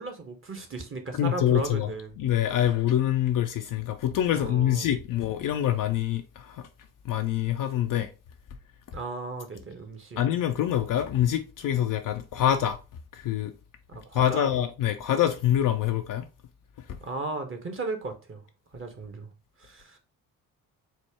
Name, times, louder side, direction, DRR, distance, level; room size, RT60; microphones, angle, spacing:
voice 1, 0.0-2.2 3.9-4.0 4.3-4.9 8.9-10.2 13.9-14.5 17.0-18.4 18.7-19.3 19.6-20.0, right 3 dB, 25° right, 1.0 m, -36 dB
voice 2, 1.1-1.9 2.2-6.6 7.1-8.1 10.2-12.8 13.1-13.5 14.1-16.2, left 11 dB, 45° left, 0.5 m, -25 dB
4.2 x 2.2 x 3.4 m
hypercardioid pair, 45°, 49 cm